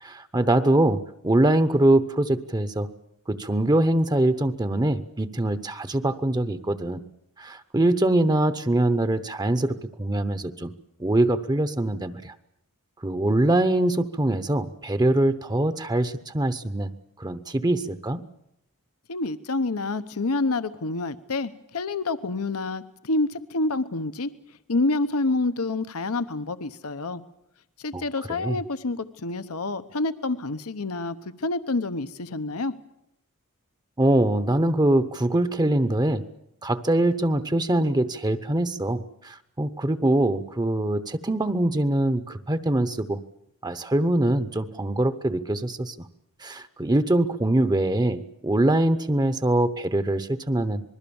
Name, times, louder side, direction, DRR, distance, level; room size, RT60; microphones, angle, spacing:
voice 1, 0.0-2.9 3.3-7.0 7.4-10.7 11.0-12.3 13.0-16.9 17.2-18.2 27.9-28.0 28.3-28.6 34.0-36.2 36.6-43.2 43.6-46.1 46.4-50.8, right 1 dB, 20° right, 12 dB, 0.8 m, -23 dB
voice 2, 19.1-24.3 24.7-27.2 27.8-32.7, left 2 dB, 80° left, 12 dB, 1.0 m, -28 dB
26.5 x 21.0 x 7.1 m, 0.80 s
head